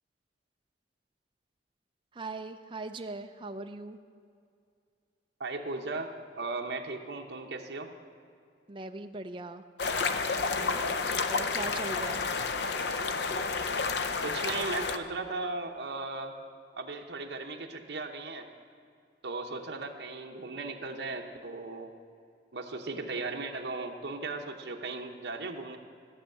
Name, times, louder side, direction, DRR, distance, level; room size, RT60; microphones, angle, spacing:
voice 1, 2.1-4.0 8.7-9.6 10.5-11.0 11.3-12.2, right 2 dB, 30° right, 7 dB, 0.5 m, -40 dB
voice 2, 5.4-7.9 14.2-16.3 16.8-18.5 19.2-21.9 22.5-25.8, right 3 dB, 70° right, 2 dB, 0.9 m, -37 dB
sound 1, 9.8-15.0, left 4 dB, 65° left, 0.5 m, -30 dB
14.5 x 6.4 x 7.8 m, 2.4 s
head